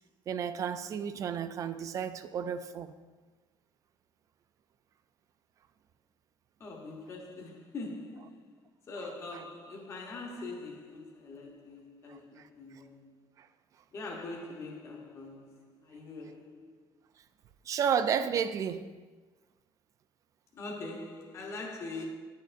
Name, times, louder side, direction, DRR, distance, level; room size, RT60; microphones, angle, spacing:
voice 1, 0.3-2.9 12.1-12.2 17.7-18.8, right 7 dB, 35° right, 0.3 m, -31 dB
voice 2, 6.6-8.6 8.8-13.1 13.9-16.7 20.5-22.0, left 3 dB, 30° left, 0.9 m, -43 dB
9.2 x 6.5 x 2.5 m
cardioid pair, 150°, 9 cm